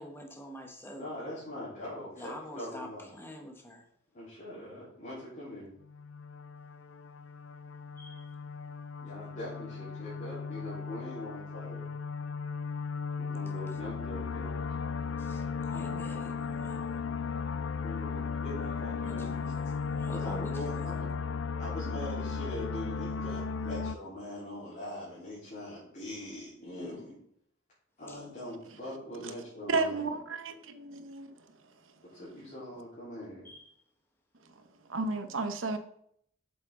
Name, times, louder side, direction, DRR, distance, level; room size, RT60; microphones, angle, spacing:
voice 1, 0.0-1.1 2.2-3.8 8.0-8.3 13.7-13.8 15.2-17.0 19.0-19.7 20.0-20.8 28.1-28.2 33.4-33.7, left 1 dB, 10° left, 1.1 m, -46 dB
voice 2, 1.0-3.1 4.1-5.7 9.0-11.9 13.2-14.5 17.8-19.7 20.1-21.1 21.6-27.2 28.0-30.2 32.1-33.5, left 1 dB, 40° left, 3.8 m, -42 dB
sound 1, 5.9-24.0, left 5 dB, 75° left, 0.4 m, -36 dB
voice 3, 29.7-31.4 34.9-35.8, right 3 dB, 85° right, 0.9 m, -32 dB
8.1 x 7.8 x 3.8 m
head